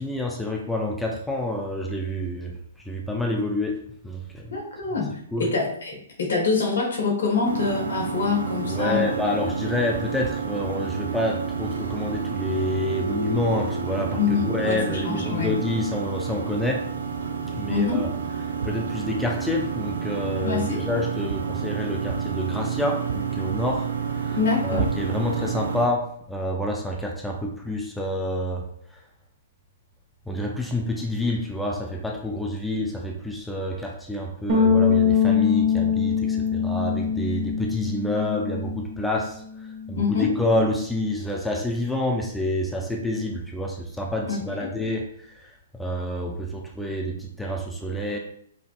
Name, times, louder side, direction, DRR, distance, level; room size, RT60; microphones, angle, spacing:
voice 1, 0.0-2.5 2.8-3.8 4.0-4.5 5.3-5.5 8.6-16.9 17.5-18.1 18.6-24.4 24.6-29.0 30.3-48.2, left 1 dB, 5° left, -1 dB, 0.5 m, -28 dB
voice 2, 4.5-9.0 14.2-15.5 17.7-18.0 20.4-20.8 24.3-24.9 39.9-40.3 44.3-44.7, left 5 dB, 65° left, 0 dB, 1.2 m, -25 dB
sound 1, 7.4-25.9, right 6 dB, 65° right, 0.5 m, -29 dB
sound 2, 34.5-39.1 39.3-40.7, left 7 dB, 50° right, 1.3 m, -23 dB
5.0 x 2.6 x 2.4 m, 0.66 s
figure-of-eight pair, 120°, 0 cm